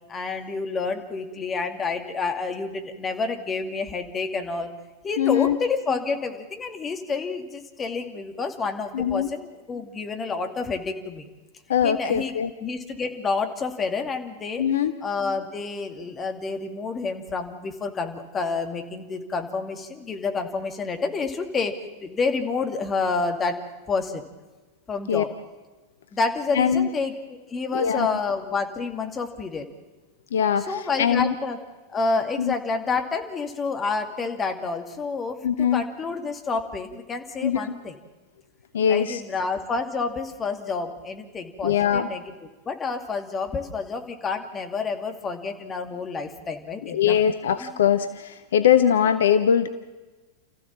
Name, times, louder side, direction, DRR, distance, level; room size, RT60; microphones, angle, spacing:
voice 1, 0.1-4.7 5.0-11.3 11.8-12.3 12.6-14.6 15.0-21.7 22.0-24.3 24.9-25.3 26.1-27.1 27.5-29.7 30.7-31.6 31.9-37.9 38.9-42.2 42.7-47.3 47.6-47.8, left 4 dB, 20° left, 5 dB, 2.5 m, -29 dB
voice 2, 5.2-5.6 8.9-9.3 11.7-12.5 14.6-14.9 25.1-25.2 26.5-26.9 27.7-28.2 30.3-31.3 32.4-32.5 35.4-35.8 37.4-37.6 38.7-39.2 41.6-42.1 46.8-49.7, left 8 dB, 60° left, 11 dB, 0.9 m, -21 dB
29.5 x 15.0 x 7.4 m, 1.2 s
figure-of-eight pair, 90°, 0 cm